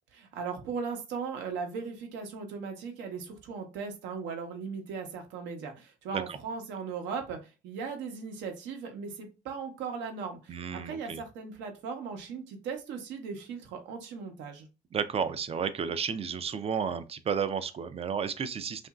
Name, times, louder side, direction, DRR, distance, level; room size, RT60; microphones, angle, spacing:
voice 1, 0.1-14.7, right 5 dB, 80° right, 0.8 m, -38 dB
voice 2, 10.5-11.2 14.9-18.9, right 7 dB, 35° right, 0.4 m, -32 dB
2.9 x 2.5 x 2.3 m
supercardioid pair, 75°, 18 cm